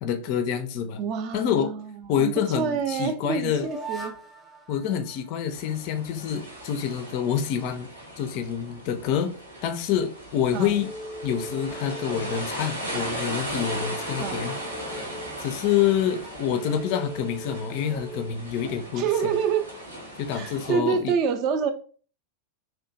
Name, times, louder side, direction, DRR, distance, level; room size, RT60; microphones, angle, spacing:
voice 1, 0.0-1.0 1.3-1.7 2.1-3.7 4.7-7.9 8.2-9.3 9.6-10.9 11.2-14.5 15.4-19.1 20.2-21.1, left 8 dB, 45° left, 0.3 m, -27 dB
voice 2, 1.0-3.5 3.9-4.1 10.5-10.7 14.2-14.5 19.0-19.6 20.3-21.7, right 6 dB, 40° right, 0.4 m, -27 dB
sound 1, 2.0-6.0 10.5-12.9 13.4-19.0, right 1 dB, ahead, 0.6 m, -41 dB
sound 2, 5.5-20.7, right 1 dB, 80° right, 0.8 m, -37 dB
2.7 x 2.1 x 2.7 m
figure-of-eight pair, 90°, 0 cm